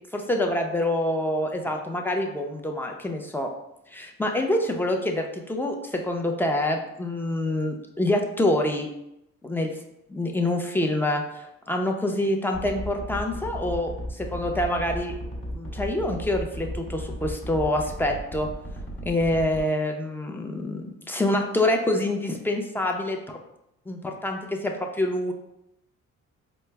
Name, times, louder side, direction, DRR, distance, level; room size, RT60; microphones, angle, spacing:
voice 1, 0.1-3.5 3.9-8.9 9.4-9.7 10.1-15.1 15.5-18.5 19.0-23.4 23.9-25.3, left 1 dB, 5° left, 3 dB, 0.5 m, -26 dB
sound 1, 12.5-19.6, equal, 40° left, 1.3 m, -35 dB
4.4 x 2.0 x 3.3 m, 0.84 s
cardioid pair, 90°, 30 cm